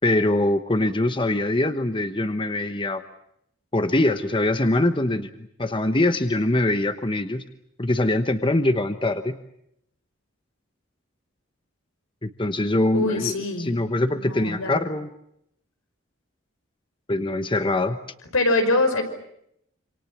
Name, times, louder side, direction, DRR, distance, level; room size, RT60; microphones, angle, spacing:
voice 1, 0.0-3.0 3.7-5.3 5.6-7.4 7.8-9.4 12.2-15.1 17.1-18.0, left 1 dB, 25° left, 9 dB, 1.1 m, -23 dB
voice 2, 12.9-13.8 14.1-14.8 18.3-19.0, left 2 dB, 85° left, 7 dB, 5.5 m, -23 dB
27.5 x 27.5 x 7.4 m, 0.75 s
head